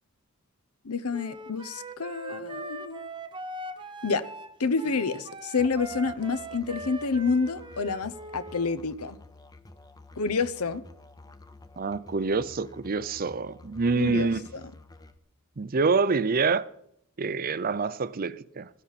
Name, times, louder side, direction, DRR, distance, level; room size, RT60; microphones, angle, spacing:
voice 1, 0.8-3.1 4.0-4.2 4.6-9.2 10.2-10.8 13.9-14.6, left 4 dB, 75° left, 0.9 m, -28 dB
Wind instrument woodwind instrument, 1.1-8.7, right 2 dB, 20° right, 1.1 m, -41 dB
Musical instrument, 5.6-15.2, left 2 dB, 15° left, 0.7 m, -50 dB
voice 2, 11.8-14.5 15.6-16.7 17.2-18.7, right 4 dB, 40° right, 0.5 m, -26 dB
16.0 x 13.5 x 4.2 m
head